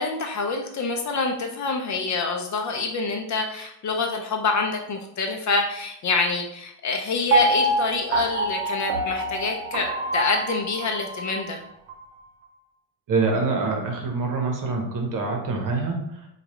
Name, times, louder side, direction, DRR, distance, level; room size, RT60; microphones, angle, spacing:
voice 1, 0.0-11.6, left 3 dB, 40° left, 3 dB, 0.6 m, -26 dB
Piano, 7.3-11.4 11.9-12.0, right 1 dB, 85° right, 0.8 m, -25 dB
voice 2, 13.1-16.3, right 3 dB, 45° right, 2 dB, 1.1 m, -25 dB
4.6 x 2.5 x 3.1 m, 0.75 s
supercardioid pair, 105°, 47 cm